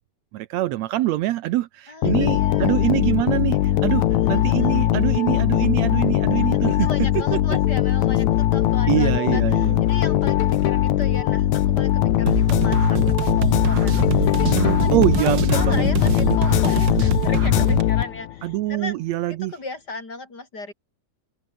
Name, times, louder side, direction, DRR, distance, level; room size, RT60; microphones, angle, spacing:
voice 1, 0.3-7.2 7.5-7.6 8.9-9.8 14.4-15.8 18.4-19.5, right 16 dB, 75° right, 1.9 m, -24 dB
voice 2, 1.9-2.7 4.1-4.7 6.5-14.9 15.2-19.0 19.3-20.7, left 3 dB, 35° left, 5.4 m, -36 dB
sound 1, 2.0-18.5, left 12 dB, 80° left, 2.6 m, -20 dB
sound 2, 12.3-17.8, right 8 dB, 45° right, 1.8 m, -25 dB
open air
omnidirectional pair, 3.3 m